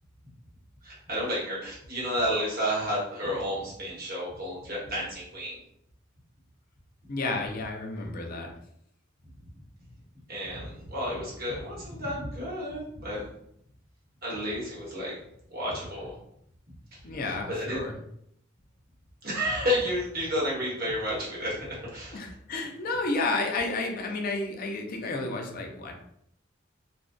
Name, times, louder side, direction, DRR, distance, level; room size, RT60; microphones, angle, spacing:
voice 1, 0.8-5.6 10.3-13.3 14.2-15.1 15.5-16.1 17.2-17.8 19.2-21.6 21.9-22.2, equal, 50° right, -5 dB, 1.0 m, -31 dB
voice 2, 7.1-8.5 17.0-18.0 22.1-25.9, left 3 dB, 45° left, 2 dB, 0.4 m, -31 dB
2.6 x 2.1 x 2.3 m, 0.72 s
head